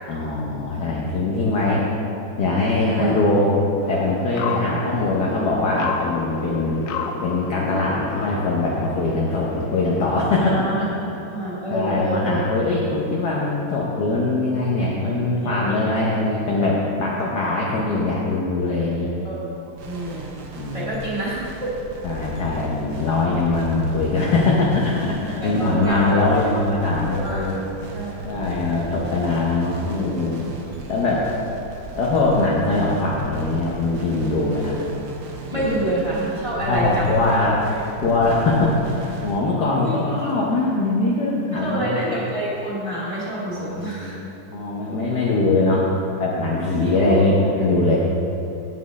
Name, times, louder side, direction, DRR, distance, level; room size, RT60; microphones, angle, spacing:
voice 1, 0.1-1.8 2.4-3.5 3.9-6.8 7.2-10.8 11.7-19.1 20.6-21.0 22.0-27.6 28.2-30.5 30.9-31.2 31.9-34.8 35.5-35.8 36.5-37.6 38.0-42.2 43.5-45.9 46.2-48.0, left 2 dB, 60° left, -4 dB, 1.4 m, -22 dB
sound 1, 3.8-10.4, left 5 dB, 75° left, 0.7 m, -31 dB
voice 2, 10.4-10.9 11.3-12.4 14.9-15.1 15.4-16.2 19.2-19.4 19.8-20.3 20.7-21.7 25.4-26.3 27.0-27.4 27.9-28.5 34.7-34.8 35.5-37.3 37.7-37.8 39.8-40.3 41.5-44.1 46.8-47.3, right 1 dB, 15° right, -8 dB, 2.3 m, -27 dB
sound 2, 19.8-39.4, right 3 dB, 60° right, 1.3 m, -38 dB
8.7 x 8.4 x 4.1 m, 2.9 s
omnidirectional pair, 2.2 m